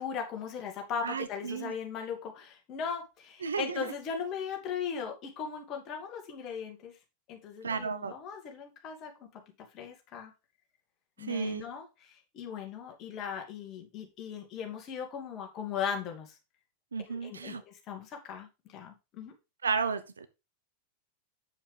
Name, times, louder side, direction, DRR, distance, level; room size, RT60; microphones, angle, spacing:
voice 1, 0.0-7.0 7.3-9.4 9.7-10.3 11.2-16.4 17.0-19.3, left 7 dB, 35° left, 3 dB, 2.4 m, -38 dB
voice 2, 1.0-1.7 3.4-3.9 7.6-8.1 11.3-11.6 16.9-17.6 19.6-20.3, right 5 dB, 70° right, 11 dB, 0.9 m, -33 dB
8.3 x 7.1 x 3.4 m, 0.26 s
figure-of-eight pair, 90°, 0 cm